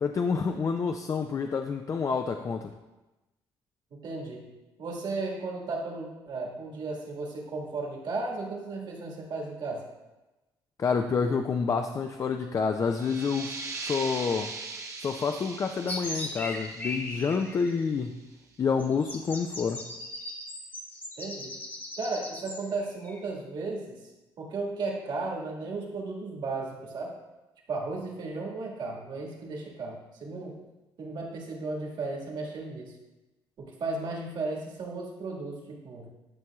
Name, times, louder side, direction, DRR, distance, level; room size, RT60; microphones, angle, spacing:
voice 1, 0.0-2.7 10.8-14.5 15.0-18.2 18.6-19.8, left 5 dB, 40° left, 6 dB, 0.4 m, -28 dB
voice 2, 3.9-4.5 4.8-9.9 21.2-21.6 22.0-24.1 24.4-27.1 27.7-30.6 31.0-33.0 33.6-36.1, right 3 dB, 60° right, -1 dB, 1.8 m, -35 dB
sound 1, 12.9-18.3, right 4 dB, 35° right, 0.9 m, -40 dB
sound 2, 15.9-17.8 18.8-23.2, left 1 dB, 20° left, 1.1 m, -39 dB
10.5 x 5.3 x 2.3 m, 1.1 s
cardioid pair, 95°, 9 cm